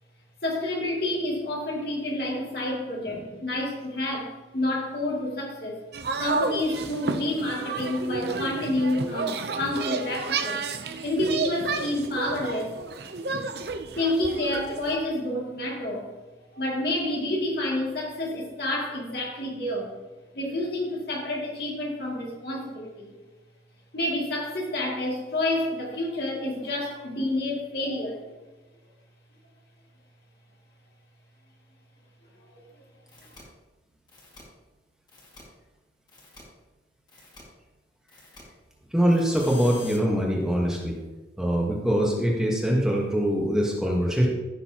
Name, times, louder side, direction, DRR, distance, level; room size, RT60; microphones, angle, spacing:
voice 1, 0.4-5.8 6.2-10.6 11.0-12.8 14.0-16.1 16.5-19.9 20.3-23.1 23.9-28.2, left 1 dB, 60° left, -3 dB, 2.5 m, -29 dB
sound 1, 5.9-15.0, right 4 dB, 60° right, 0.6 m, -31 dB
sound 2, 33.1-33.4 34.1-34.4 35.1-35.4 36.1-36.4 37.1-37.4 38.1-38.4 39.1-40.0, left 3 dB, 25° left, 2.1 m, -47 dB
voice 2, 38.9-41.0 41.4-44.3, equal, 5° right, -2 dB, 1.3 m, -23 dB
15.0 x 6.6 x 2.9 m, 1.2 s
head